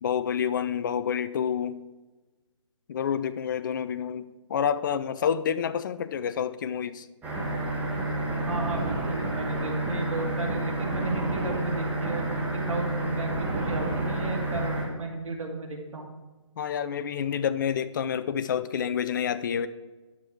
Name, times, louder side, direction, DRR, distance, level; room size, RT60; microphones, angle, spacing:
voice 1, 0.0-1.8 2.9-7.1 16.6-19.7, left 8 dB, 40° left, 13 dB, 0.5 m, -28 dB
sound 1, 7.2-14.8, right 1 dB, 10° right, 1.9 m, -29 dB
voice 2, 8.5-16.1, right 2 dB, 75° right, 1 dB, 2.6 m, -34 dB
10.5 x 6.7 x 4.7 m, 1.2 s
hypercardioid pair, 150°, 17 cm